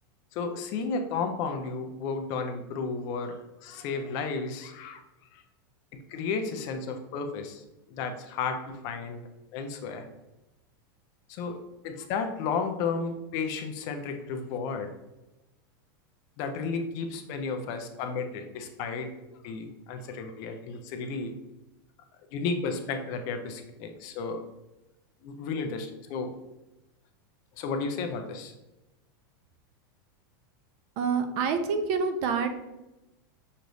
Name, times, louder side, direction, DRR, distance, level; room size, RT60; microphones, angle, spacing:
voice 1, 0.3-5.0 5.3-5.4 6.1-7.6 7.9-9.2 9.5-10.1 11.3-11.6 11.8-14.9 16.4-19.1 19.4-21.3 22.3-24.4 25.2-26.3 27.6-28.5, left 4 dB, 30° left, 6 dB, 0.4 m, -33 dB
voice 2, 31.0-32.5, right 5 dB, 35° right, 7 dB, 0.4 m, -27 dB
6.4 x 3.0 x 2.6 m, 0.98 s
supercardioid pair, 175°, 12 cm